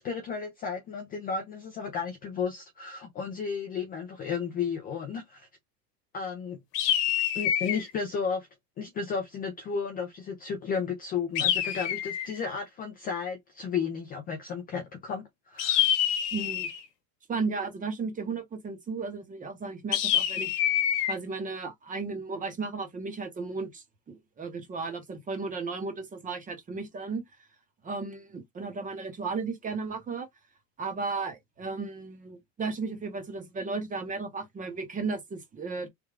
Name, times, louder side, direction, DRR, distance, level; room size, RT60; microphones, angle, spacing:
voice 1, 0.0-5.5 6.1-6.6 7.3-8.5 8.8-15.8, left 6 dB, 20° left, 0.4 m, -33 dB
sound 1, 6.7-7.9 11.4-12.4 15.6-16.9 19.9-21.1, left 10 dB, 80° left, 1.0 m, -26 dB
voice 2, 16.3-16.7 17.3-20.5 21.1-27.2 27.8-30.3 30.8-35.9, right 4 dB, 15° right, 0.7 m, -34 dB
3.4 x 2.3 x 3.5 m
supercardioid pair, 135°, 48 cm